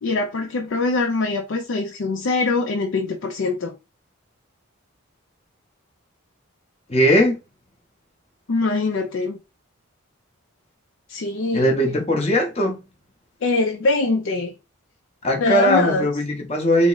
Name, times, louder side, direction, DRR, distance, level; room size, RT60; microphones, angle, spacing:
voice 1, 0.0-3.8 8.5-9.4 11.1-11.8 13.4-14.5 15.4-16.1, left 3 dB, 60° left, 0.4 m, -23 dB
voice 2, 6.9-7.4 11.5-12.8 15.2-16.9, equal, 30° left, 0.8 m, -19 dB
3.4 x 2.0 x 3.8 m
head